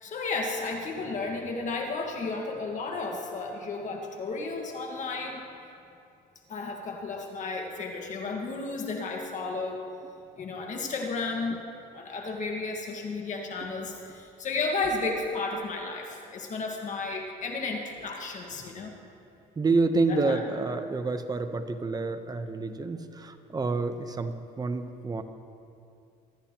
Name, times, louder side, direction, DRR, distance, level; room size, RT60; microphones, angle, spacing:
voice 1, 0.0-5.4 6.5-9.8 10.4-11.6 11.9-18.9 20.1-20.4, left 3 dB, 45° left, 1 dB, 1.7 m, -33 dB
voice 2, 19.6-25.2, right 3 dB, 20° right, 8 dB, 0.9 m, -28 dB
24.5 x 13.0 x 3.0 m, 2.6 s
cardioid pair, 110°, 17 cm